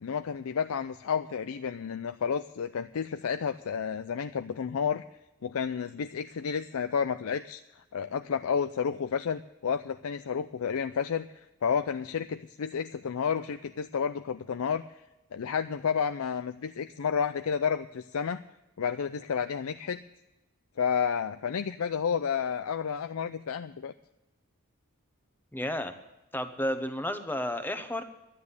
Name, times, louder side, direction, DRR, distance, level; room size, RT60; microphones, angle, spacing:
voice 1, 0.0-5.0 5.4-11.3 11.6-15.0 15.3-18.4 18.8-20.0 20.8-23.9, left 6 dB, 85° left, 10 dB, 0.5 m, -31 dB
voice 2, 25.5-25.9 26.3-28.0, left 1 dB, 10° left, 8 dB, 1.0 m, -32 dB
11.5 x 9.7 x 8.2 m, 0.99 s
head